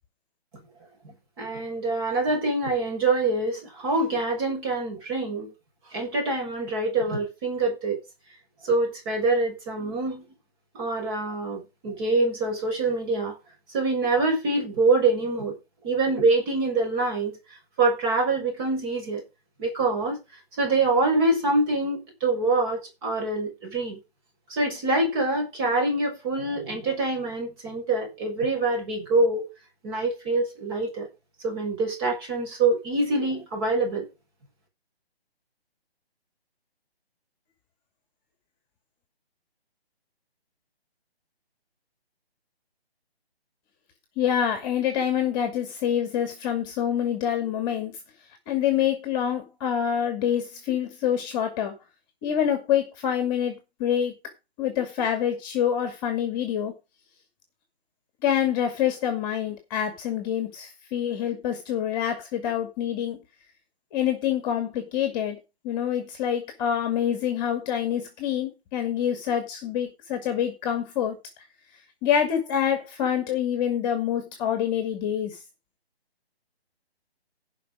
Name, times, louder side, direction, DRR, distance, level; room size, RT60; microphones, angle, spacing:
voice 1, 1.4-5.5 5.9-8.0 8.6-10.2 10.7-13.4 13.7-15.5 15.8-17.4 17.8-19.2 19.6-20.2 20.6-24.0 24.5-29.5 29.8-31.1 31.4-34.1, right 2 dB, 25° right, 6.6 m, -25 dB
voice 2, 44.2-48.0 48.5-51.8 52.2-54.2 54.6-56.7 58.2-63.2 63.9-65.4 65.6-71.2 72.0-75.4, left 9 dB, 20° left, 2.4 m, -26 dB
16.0 x 5.7 x 5.2 m
hypercardioid pair, 160°, 32 cm